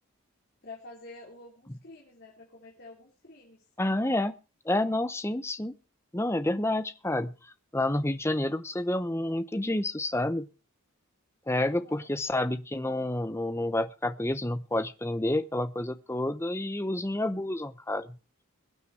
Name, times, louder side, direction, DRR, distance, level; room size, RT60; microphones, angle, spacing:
voice 1, 0.6-3.6 11.5-12.1, left 3 dB, 50° left, -1 dB, 3.7 m, -48 dB
voice 2, 3.8-4.3 4.7-5.8 6.1-7.3 7.7-10.5 11.5-18.1, left 1 dB, 10° left, 12 dB, 0.8 m, -29 dB
22.0 x 9.2 x 4.7 m, 0.33 s
head